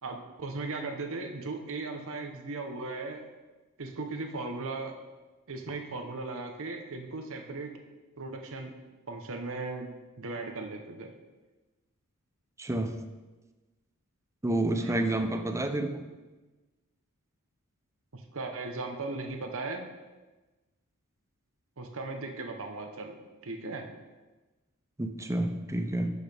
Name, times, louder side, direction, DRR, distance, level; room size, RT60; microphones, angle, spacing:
voice 1, 0.0-3.3 3.8-5.0 5.5-7.7 8.2-8.8 9.1-9.9 10.2-11.1 14.7-15.2 18.1-19.9 21.8-23.9, right 3 dB, 65° right, 5 dB, 1.0 m, -37 dB
voice 2, 12.6-12.9 14.4-16.0 25.0-26.1, right 1 dB, 15° right, 6 dB, 0.5 m, -29 dB
10.5 x 6.3 x 3.5 m, 1.2 s
head